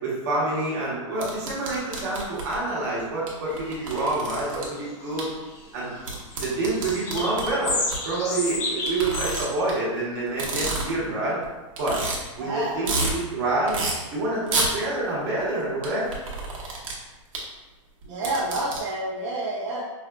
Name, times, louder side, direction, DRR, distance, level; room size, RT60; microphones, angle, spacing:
voice 1, 0.0-5.3 5.7-5.9 6.4-7.7 8.0-11.4 11.8-12.0 12.3-13.8 14.1-16.1, right 2 dB, 35° right, -8 dB, 1.2 m, -27 dB
sound 1, 1.2-2.6 3.3-3.4 3.6-4.6 5.2-5.3 6.0-8.0 8.9-9.7 10.3-11.1 11.4-11.5 11.8-12.2 12.6-13.1 13.7-13.9 14.5-14.7 15.8-16.9 17.3-17.4 18.0-18.8, right 3 dB, 85° right, 1.2 m, -28 dB
sound 2, 3.5-5.5 5.8-9.4, left 2 dB, 30° left, 0.7 m, -32 dB
voice 2, 12.4-12.8 18.0-19.8, right 2 dB, 65° right, -5 dB, 0.8 m, -29 dB
4.9 x 2.5 x 2.3 m, 1.2 s
supercardioid pair, 180°, 17 cm